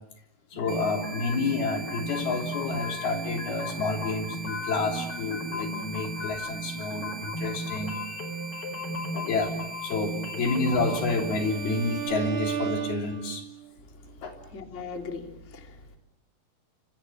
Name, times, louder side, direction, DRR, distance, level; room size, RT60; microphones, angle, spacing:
voice 1, 0.5-8.0 9.1-9.5 9.8-13.4 14.2-14.3, left 3 dB, 75° left, 4 dB, 5.4 m, -29 dB
sound 1, 0.5-11.4, left 1 dB, 35° left, 5.4 m, -35 dB
sound 2, 0.7-12.1, right 5 dB, 60° right, 5.8 m, -41 dB
Bowed string instrument, 10.6-13.7, right 9 dB, 90° right, 4.3 m, -34 dB
voice 2, 14.5-16.0, left 4 dB, 20° left, 4 dB, 2.9 m, -39 dB
27.5 x 26.5 x 7.4 m, 0.75 s
omnidirectional pair, 4.5 m